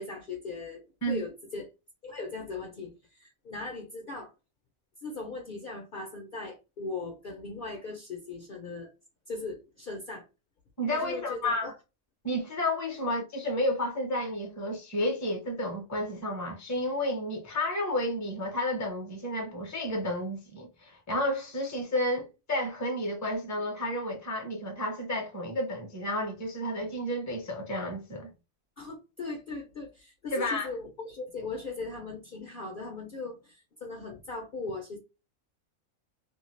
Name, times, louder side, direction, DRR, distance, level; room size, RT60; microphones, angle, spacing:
voice 1, 0.0-1.7 2.0-4.3 5.0-8.9 9.3-10.2 10.9-11.7 28.8-35.0, left 3 dB, 50° left, 0.7 m, -39 dB
voice 2, 10.8-11.7 12.2-28.3 30.3-30.7, left 1 dB, 15° left, 0.7 m, -31 dB
2.6 x 2.4 x 3.0 m
omnidirectional pair, 1.4 m